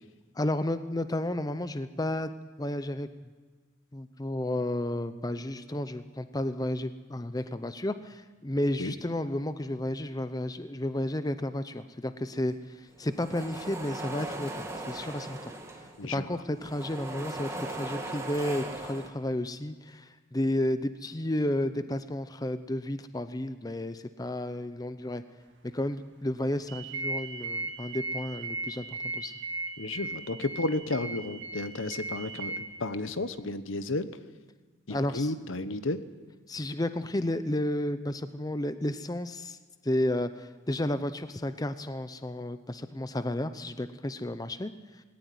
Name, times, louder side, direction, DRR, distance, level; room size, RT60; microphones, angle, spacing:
voice 1, 0.4-2.3 2.6-3.1 3.9-15.5 16.1-25.2 25.6-29.3 34.9-35.3 36.5-39.6 39.8-45.0, left 1 dB, 20° left, 11 dB, 0.6 m, -32 dB
sound 1, 12.9-16.1 16.4-19.1, right 2 dB, 15° right, 1.9 m, -39 dB
sound 2, 26.7-32.6, right 3 dB, 60° right, 2.3 m, -37 dB
voice 2, 29.8-34.1 34.9-36.0, left 2 dB, 75° left, 12 dB, 1.1 m, -32 dB
19.0 x 17.5 x 9.4 m, 1.4 s
head